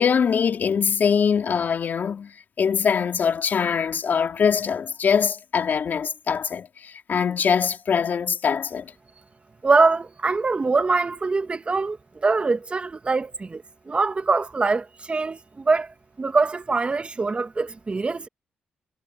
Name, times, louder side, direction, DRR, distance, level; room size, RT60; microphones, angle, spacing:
voice 1, 0.0-8.9, left 6 dB, 60° left, 4.4 m, -23 dB
voice 2, 9.6-15.9 16.2-18.3, right 3 dB, 30° right, 1.9 m, -23 dB
cardioid pair, 70°, 4 cm